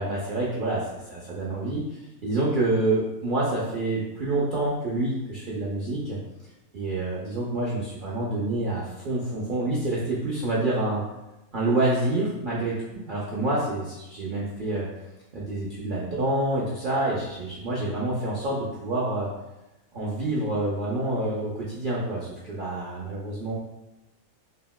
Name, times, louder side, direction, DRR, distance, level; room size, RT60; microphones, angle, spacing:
voice 1, 0.0-6.2 6.7-11.0 11.5-14.9 15.3-19.3 19.9-23.5, right 2 dB, 80° right, -6 dB, 0.4 m, -27 dB
3.7 x 2.1 x 2.2 m, 0.99 s
omnidirectional pair, 1.5 m